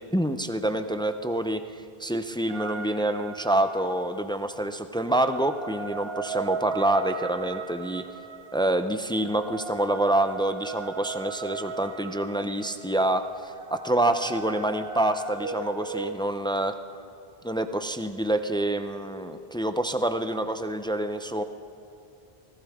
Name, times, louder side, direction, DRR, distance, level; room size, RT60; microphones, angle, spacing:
voice 1, 0.0-1.6 2.0-8.1 8.5-16.8 17.4-21.4, right 1 dB, 5° left, 8 dB, 0.4 m, -27 dB
sound 1, 2.5-4.1 5.0-16.1, right 5 dB, 75° right, 1.0 m, -37 dB
24.5 x 15.5 x 3.6 m, 3.0 s
omnidirectional pair, 1.0 m